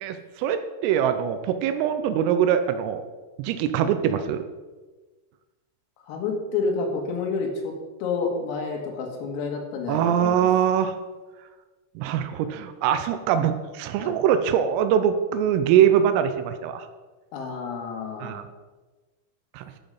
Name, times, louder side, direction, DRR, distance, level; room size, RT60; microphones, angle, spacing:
voice 1, 0.0-3.0 3.4-4.4 9.9-11.0 12.0-16.9 18.2-18.4 19.5-19.6, right 9 dB, 85° right, 10 dB, 3.2 m, -23 dB
voice 2, 6.0-7.7 8.0-10.5 14.0-14.2 17.3-18.4, left 4 dB, 80° left, 2 dB, 4.2 m, -29 dB
11.5 x 7.1 x 5.4 m, 1.2 s
omnidirectional pair, 5.9 m